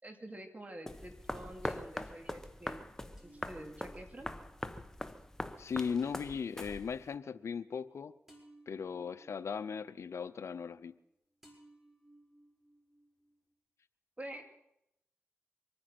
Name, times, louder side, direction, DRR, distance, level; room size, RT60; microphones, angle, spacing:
voice 1, 0.0-2.8 3.2-4.3 14.2-14.4, right 1 dB, 30° right, 5 dB, 2.8 m, -47 dB
sound 1, 0.6-1.5 3.2-11.1 11.4-13.5, right 1 dB, 5° right, 5.2 m, -63 dB
sound 2, 0.9-7.1, left 1 dB, 10° left, 1.1 m, -42 dB
voice 2, 5.6-8.1 8.7-10.9, left 6 dB, 75° left, 14 dB, 0.7 m, -38 dB
24.5 x 9.7 x 6.0 m, 0.81 s
cardioid pair, 60°, 5 cm